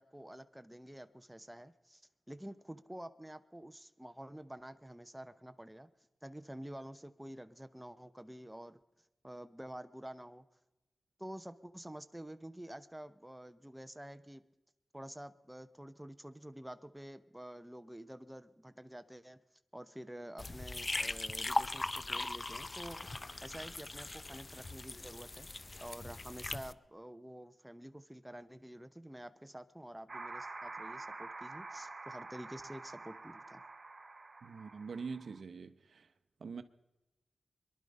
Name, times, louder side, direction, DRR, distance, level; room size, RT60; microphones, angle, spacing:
voice 1, 0.0-2.0 2.3-5.9 6.2-8.8 9.2-10.5 11.2-14.4 14.9-19.4 19.7-25.5 25.8-33.6, right 1 dB, 10° right, 0.8 m, -49 dB
sound 1, 20.4-26.7, left 2 dB, 40° left, 0.5 m, -39 dB
sound 2, 30.1-35.4, right 3 dB, 45° right, 0.6 m, -47 dB
voice 2, 34.4-36.1 36.4-36.6, right 5 dB, 80° right, 0.7 m, -44 dB
23.0 x 11.5 x 5.3 m
cardioid pair, 60°, 0 cm